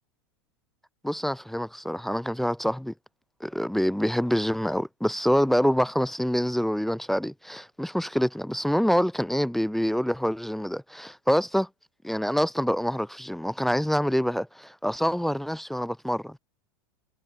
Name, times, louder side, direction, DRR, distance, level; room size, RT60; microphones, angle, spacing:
voice 1, 1.0-2.9 3.4-11.7 12.0-16.4, equal, ahead, 0.6 m, -26 dB
hypercardioid pair, 90°, 13 cm